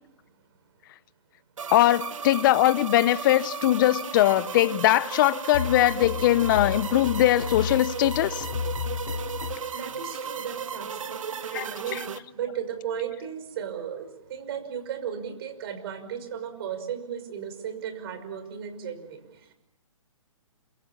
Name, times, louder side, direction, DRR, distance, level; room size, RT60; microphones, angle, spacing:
sound 1, 1.6-12.2, right 6 dB, 70° right, 1.7 m, -35 dB
voice 1, 1.7-8.5 11.5-11.7, left 14 dB, 35° left, 0.9 m, -21 dB
sound 2, 5.5-9.7, left 5 dB, 55° left, 3.8 m, -32 dB
voice 2, 9.7-19.5, right 8 dB, 45° right, 5.8 m, -35 dB
27.5 x 24.0 x 7.3 m
hypercardioid pair, 135°, 17 cm